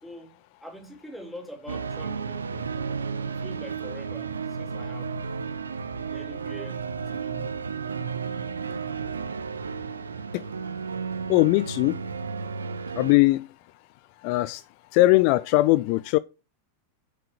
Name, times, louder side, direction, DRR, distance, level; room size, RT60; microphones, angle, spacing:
voice 1, 0.0-2.8 3.3-5.3 5.9-7.7, equal, ahead, 2.8 m, -44 dB
sound 1, 1.7-13.1, right 5 dB, 75° right, 0.7 m, -33 dB
voice 2, 11.3-11.9 13.0-13.4 14.2-14.6 14.9-16.2, left 19 dB, 45° left, 0.4 m, -20 dB
7.6 x 6.7 x 7.7 m
figure-of-eight pair, 90°, 0 cm